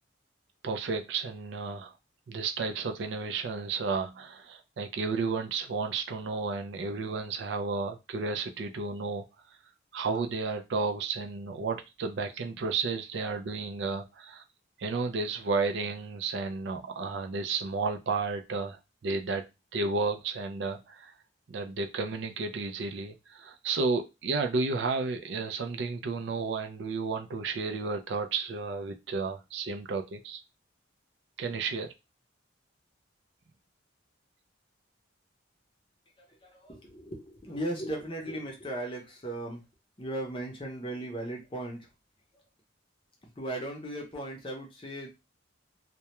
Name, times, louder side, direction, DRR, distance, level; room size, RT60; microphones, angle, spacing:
voice 1, 0.6-1.9 2.3-9.3 9.9-14.4 14.8-21.1 21.5-30.4 31.4-31.9, right 4 dB, 65° right, 0.4 m, -32 dB
voice 2, 36.2-39.6 40.0-41.9 42.3-42.4 43.4-45.1, right 1 dB, 25° left, 0.6 m, -37 dB
2.2 x 2.1 x 2.9 m
head